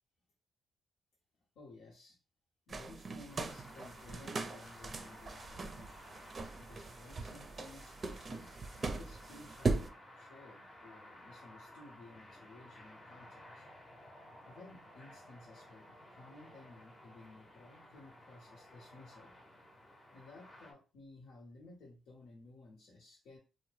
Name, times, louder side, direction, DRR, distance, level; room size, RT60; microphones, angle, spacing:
voice 1, 1.5-2.2 2.7-5.9 6.5-9.9 10.1-13.7 14.4-19.3 20.1-23.4, left 2 dB, 85° left, -2 dB, 0.8 m, -56 dB
sound 1, 2.7-9.9, right 3 dB, 40° right, 0.4 m, -40 dB
sound 2, 3.3-20.7, left 1 dB, 40° left, 0.7 m, -56 dB
2.7 x 2.1 x 3.1 m, 0.32 s
cardioid pair, 75°, 0 cm